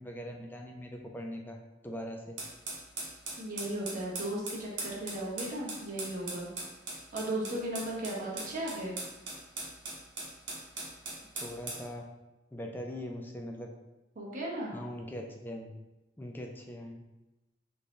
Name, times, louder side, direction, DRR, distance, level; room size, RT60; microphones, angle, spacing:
voice 1, 0.0-1.6 1.8-2.4 11.3-12.0 12.5-13.7 14.7-15.7 16.2-17.0, equal, 10° left, 1 dB, 0.4 m, -41 dB
sound 1, 2.4-11.9, right 3 dB, 80° right, 1.0 m, -40 dB
voice 2, 3.4-6.5 7.1-9.0 14.1-14.8, right 1 dB, 45° right, -4 dB, 0.9 m, -36 dB
3.7 x 2.6 x 3.0 m, 1.0 s
head